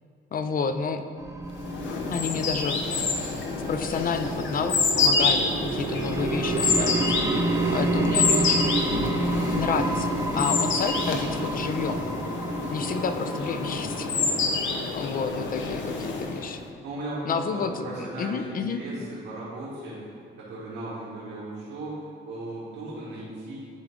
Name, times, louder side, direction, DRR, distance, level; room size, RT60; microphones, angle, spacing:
voice 1, 0.3-1.0 2.1-2.8 3.7-7.1 7.7-8.8 9.5-12.0 12.7-14.1 14.9-16.6 17.3-17.9 18.2-18.8, left 5 dB, 45° left, 9 dB, 0.4 m, -30 dB
sound 1, 1.2-14.1, right 1 dB, 15° right, 0.7 m, -31 dB
sound 2, 1.6-16.5, left 4 dB, 75° left, 0.8 m, -28 dB
sound 3, 4.1-12.5, right 5 dB, 50° right, 0.5 m, -33 dB
voice 2, 14.1-14.5 16.8-23.6, right 1 dB, 90° right, -9 dB, 1.7 m, -37 dB
10.5 x 3.5 x 3.6 m, 2.3 s
cardioid pair, 90°, 20 cm